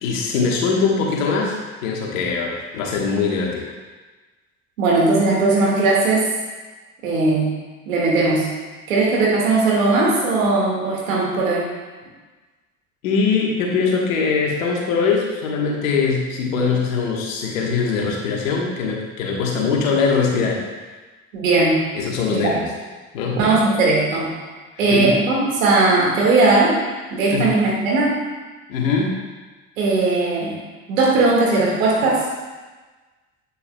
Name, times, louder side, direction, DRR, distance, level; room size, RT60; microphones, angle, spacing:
voice 1, 0.0-3.7 13.0-20.6 21.9-22.7 23.1-23.4 24.8-25.2 27.3-27.5 28.7-29.2, left 5 dB, 80° left, -1 dB, 1.4 m, -22 dB
voice 2, 4.8-6.3 7.0-7.5 7.9-8.5 8.9-11.7 21.3-21.9 22.3-22.5 23.3-24.3 24.8-26.8 27.1-28.2 29.8-30.6 30.9-32.2, right 3 dB, 80° right, -3 dB, 1.9 m, -18 dB
8.4 x 6.9 x 2.2 m, 1.3 s
hypercardioid pair, 65°, 39 cm